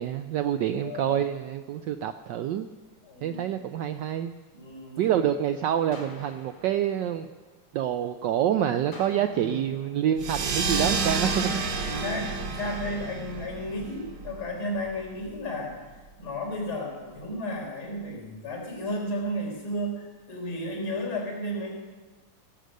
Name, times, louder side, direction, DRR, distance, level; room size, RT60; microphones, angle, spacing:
voice 1, 0.0-2.7 3.2-4.3 5.0-7.3 7.7-11.5, right 10 dB, 80° right, 9 dB, 1.0 m, -27 dB
voice 2, 0.8-1.2 3.0-3.4 4.5-5.2 9.3-9.7 11.8-15.8 16.2-21.7, left 1 dB, 75° left, 0 dB, 4.9 m, -33 dB
sound 1, 5.9-8.0 8.9-11.0, left 2 dB, 60° left, 2.7 m, -49 dB
sound 2, 10.2-15.3, right 4 dB, 60° right, 1.8 m, -30 dB
17.0 x 8.0 x 6.3 m, 1.3 s
omnidirectional pair, 2.4 m